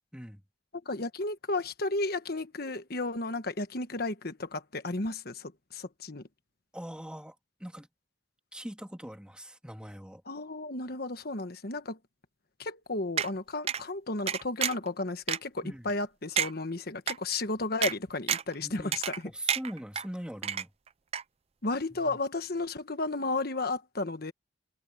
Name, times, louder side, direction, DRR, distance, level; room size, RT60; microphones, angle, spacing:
voice 1, 0.8-6.2 10.3-12.0 12.6-19.3 21.6-24.3, left 2 dB, 50° left, 1.4 m, -33 dB
voice 2, 6.7-7.9 8.5-10.2 15.6-15.9 18.6-18.9 19.2-20.7 21.9-22.2, equal, 5° right, 2.2 m, -42 dB
sound 1, 13.2-13.3 13.7-13.8 14.3-14.9 15.3-15.4 15.9-16.0 16.4-16.5 17.1-17.2 17.8-17.9 18.3-18.5 18.9-19.2 19.5-20.0 20.4-20.9 21.1-21.2, right 8 dB, 30° right, 0.4 m, -29 dB
head